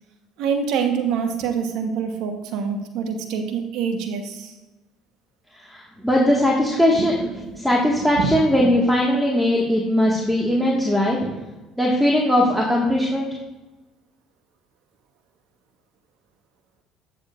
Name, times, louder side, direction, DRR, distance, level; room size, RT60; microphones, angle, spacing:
voice 1, 0.4-4.5 6.7-7.5 8.2-8.7, right 6 dB, 70° right, 6 dB, 1.1 m, -26 dB
voice 2, 5.6-7.3 7.6-11.4 11.8-13.3, left 1 dB, ahead, -3 dB, 1.7 m, -19 dB
11.5 x 7.0 x 2.5 m, 1.1 s
supercardioid pair, 75°, 0 cm